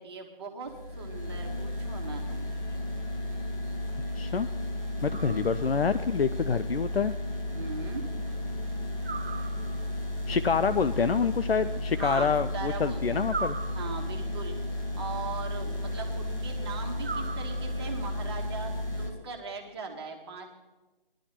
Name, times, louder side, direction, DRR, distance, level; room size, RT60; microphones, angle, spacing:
voice 1, 0.0-2.5 5.0-5.5 7.5-8.0 12.0-12.3 12.5-13.3 13.7-14.5 14.9-20.5, right 4 dB, 25° right, 1 dB, 1.6 m, -39 dB
sound 1, 0.7-19.1, left 1 dB, 20° left, 1.8 m, -33 dB
voice 2, 4.2-4.5 5.0-7.1 10.3-13.6, left 5 dB, 85° left, 12 dB, 0.7 m, -27 dB
sound 2, 5.1-6.0 9.0-10.1 13.3-14.4 17.0-18.0, right 4 dB, 90° right, 1.1 m, -39 dB
21.0 x 11.5 x 4.4 m, 1.2 s
figure-of-eight pair, 160°, 29 cm